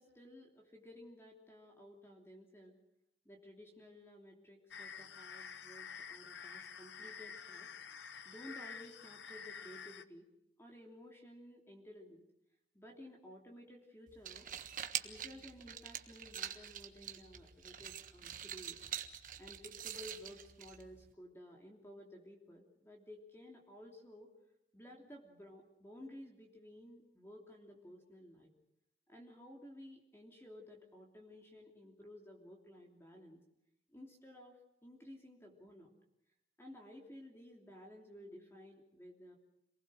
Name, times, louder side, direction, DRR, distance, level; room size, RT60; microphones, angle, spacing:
voice 1, 0.0-2.8 3.2-7.7 8.2-10.3 10.6-12.3 12.7-14.5 15.0-18.8 19.4-24.3 24.7-28.5 29.1-33.4 33.9-35.9 36.6-39.3, left 1 dB, 15° left, 1 dB, 3.0 m, -55 dB
sound 1, 4.7-10.0, left 6 dB, 90° left, 1.0 m, -49 dB
sound 2, 14.1-21.1, right 9 dB, 45° right, 1.3 m, -45 dB
27.5 x 19.0 x 6.4 m, 0.84 s
head